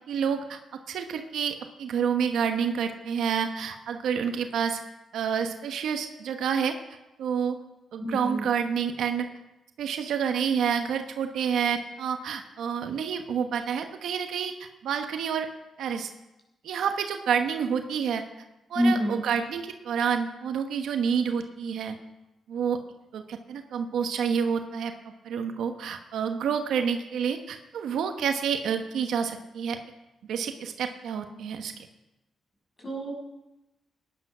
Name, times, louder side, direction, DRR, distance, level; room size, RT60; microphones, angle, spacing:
voice 1, 0.1-4.8 5.1-6.7 7.2-7.6 7.9-9.3 9.8-15.5 15.8-16.1 16.6-18.2 18.7-22.0 22.5-22.8 23.1-24.9 25.2-29.8 30.3-31.9, right 7 dB, 80° right, 6 dB, 1.1 m, -28 dB
voice 2, 8.0-8.4 18.7-19.2 32.8-33.1, equal, 25° left, -1 dB, 6.4 m, -26 dB
17.5 x 10.5 x 6.1 m, 0.98 s
cardioid pair, 110°, 0 cm